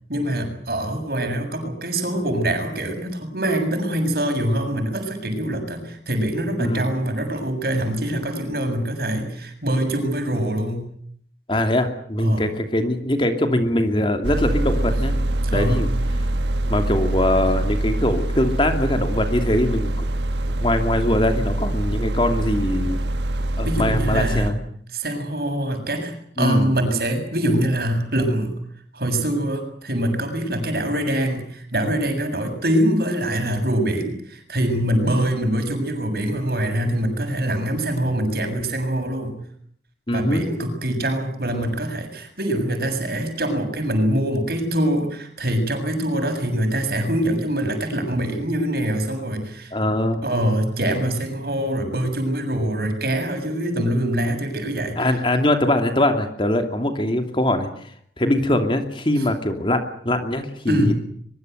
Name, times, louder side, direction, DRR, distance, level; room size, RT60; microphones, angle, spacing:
voice 1, 0.1-10.9 12.2-12.5 15.4-15.8 23.6-24.6 24.9-28.5 28.9-39.4 40.1-49.7 50.2-55.2 60.7-60.9, right 1 dB, 60° right, 5 dB, 7.2 m, -24 dB
voice 2, 11.5-15.1 15.5-15.9 16.7-20.0 20.6-23.0 23.6-24.6 26.4-26.7 40.1-40.4 49.7-50.2 55.0-57.7 58.2-60.9, left 1 dB, 30° left, 6 dB, 2.8 m, -22 dB
sound 1, 14.2-24.5, right 1 dB, 85° right, 1.3 m, -24 dB
23.5 x 23.0 x 8.0 m, 0.64 s
head